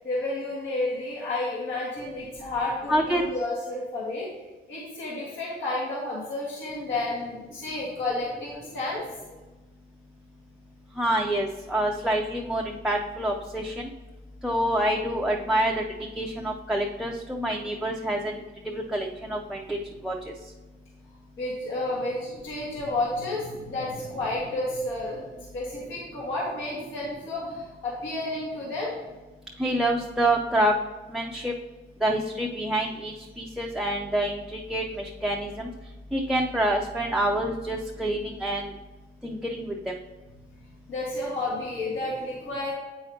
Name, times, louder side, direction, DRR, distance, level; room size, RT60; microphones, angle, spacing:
voice 1, 0.0-4.3 4.7-9.0 21.4-25.3 25.5-28.9 40.9-42.7, left 2 dB, 70° left, -5 dB, 1.7 m, -31 dB
voice 2, 2.9-3.2 11.0-13.9 14.4-15.8 16.2-18.3 18.7-19.8 20.0-20.1 29.6-30.7 31.1-31.5 32.0-35.7 36.1-38.7 39.2-39.6, right 1 dB, ahead, -1 dB, 0.5 m, -27 dB
8.0 x 5.6 x 2.8 m, 1.2 s
cardioid pair, 90°, 20 cm